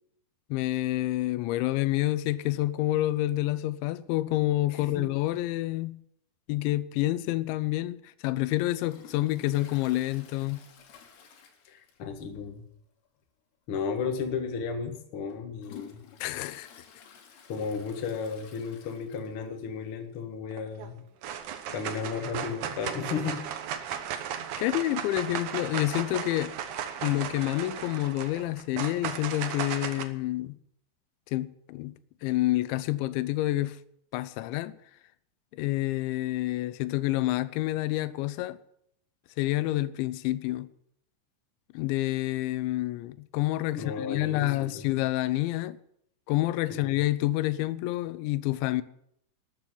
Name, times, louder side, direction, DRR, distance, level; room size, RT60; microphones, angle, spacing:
voice 1, 0.5-6.0 6.5-10.6 16.2-16.7 24.6-26.6 27.0-30.6 31.3-31.9 32.2-33.8 34.1-34.8 35.5-38.6 39.4-40.7 41.7-45.8 46.3-48.8, left 16 dB, 85° left, 3.0 m, -28 dB
voice 2, 4.7-5.0 11.6-12.7 13.7-16.0 17.5-21.0 21.7-23.4 24.6-24.7 43.7-44.9 46.7-47.0, left 5 dB, 55° left, 1.5 m, -34 dB
Toilet flush, 8.8-12.2 12.5-12.6 13.1-13.2 14.0-14.1 14.7-19.6 19.9-20.0 20.2-20.3 21.3-21.4, left 7 dB, 70° left, 3.7 m, -53 dB
sound 1, 20.5-20.9 21.2-30.0, right 9 dB, 90° right, 1.7 m, -36 dB
13.0 x 8.8 x 9.1 m
omnidirectional pair, 5.2 m